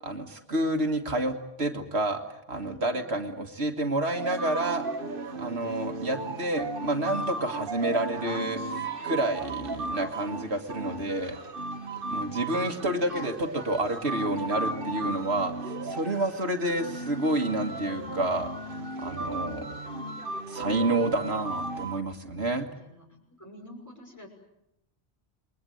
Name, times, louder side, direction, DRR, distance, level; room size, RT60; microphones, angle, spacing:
voice 1, 0.0-4.9 5.4-11.4 12.1-18.5 19.0-19.8 20.5-22.7, right 1 dB, 75° right, 5 dB, 2.1 m, -29 dB
voice 2, 2.6-3.2 11.9-12.8 22.3-23.1 23.4-24.3, left 1 dB, 15° left, 1 dB, 6.0 m, -50 dB
sound 1, 4.1-22.0, right 2 dB, 55° right, 1.6 m, -35 dB
29.0 x 21.5 x 7.9 m, 0.82 s
omnidirectional pair, 1.1 m